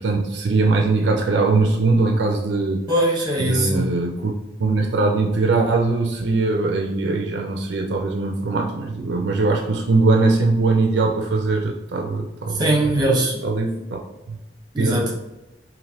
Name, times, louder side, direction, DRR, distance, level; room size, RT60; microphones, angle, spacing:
voice 1, 0.0-2.8 3.4-4.3 4.6-13.1 13.4-14.0 14.3-14.4 14.8-15.1, right 3 dB, 70° right, 2 dB, 0.4 m, -21 dB
voice 2, 2.9-3.9 12.6-13.4 14.7-15.1, right 1 dB, 20° right, -2 dB, 0.7 m, -20 dB
3.2 x 2.5 x 2.6 m, 0.98 s
head